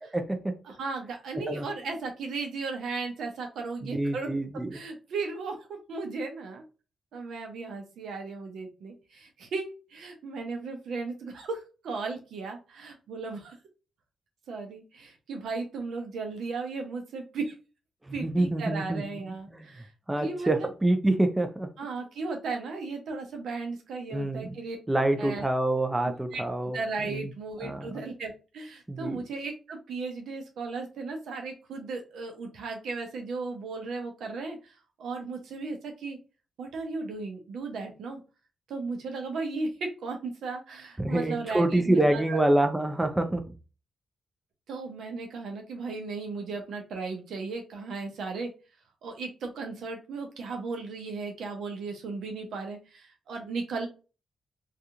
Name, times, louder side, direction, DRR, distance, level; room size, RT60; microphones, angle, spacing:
voice 1, 0.0-0.6 1.5-1.7 3.8-4.8 18.0-19.0 19.5-19.7 20.1-21.7 24.1-24.6 24.9-26.8 27.1-27.3 27.6-28.0 28.9-29.2 41.0-43.4, right 1 dB, 15° right, 0.5 m, -26 dB
voice 2, 0.6-4.3 4.7-6.6 7.1-13.6 14.5-17.5 18.1-19.9 20.2-20.7 21.8-24.8 25.2-25.4 26.3-26.4 26.7-36.2 36.6-38.2 38.7-42.4 44.7-48.5 49.0-53.9, right 4 dB, 80° right, 0.7 m, -36 dB
2.8 x 2.4 x 2.5 m
supercardioid pair, 50°, 0 cm